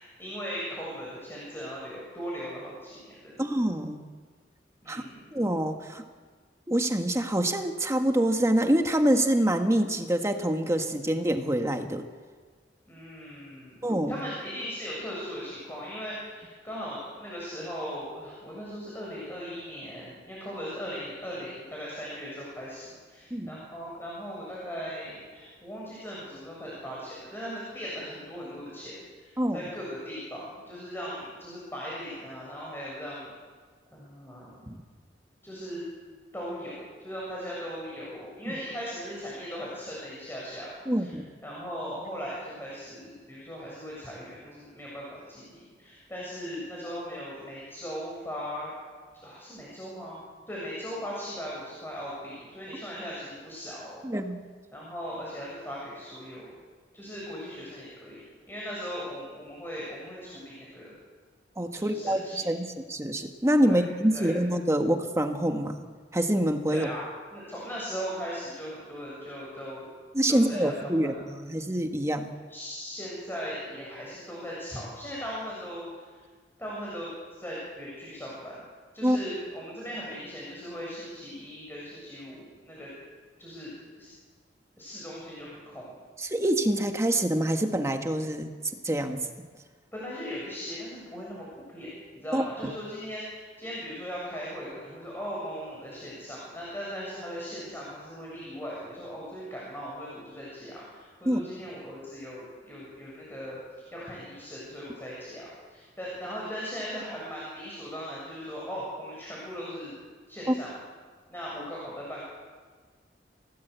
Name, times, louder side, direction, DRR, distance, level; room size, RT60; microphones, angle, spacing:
voice 1, 0.0-3.4 4.8-5.3 12.9-33.3 33.9-34.6 35.4-35.8 36.3-41.2 41.4-48.7 49.2-50.2 50.5-54.1 54.7-56.5 56.9-60.9 61.7-62.4 63.6-64.3 66.7-67.0 67.3-69.9 70.3-71.1 72.5-76.2 76.6-78.6 78.9-82.9 83.4-84.1 84.8-85.9 89.9-103.6 103.9-109.9 110.3-110.7 111.3-112.2, equal, 15° left, -5 dB, 7.3 m, -38 dB
voice 2, 3.4-4.0 4.9-5.0 5.3-6.0 6.7-12.1 13.8-14.2 23.3-23.5 29.4-29.6 34.7-34.8 40.9-41.2 54.0-54.4 61.6-65.8 66.1-66.9 70.1-72.3 79.0-79.2 86.2-88.5 88.8-89.3 92.3-92.7 101.2-101.4 110.5-110.6, right 1 dB, 15° right, 5 dB, 1.5 m, -26 dB
29.5 x 18.0 x 8.2 m, 1.5 s
head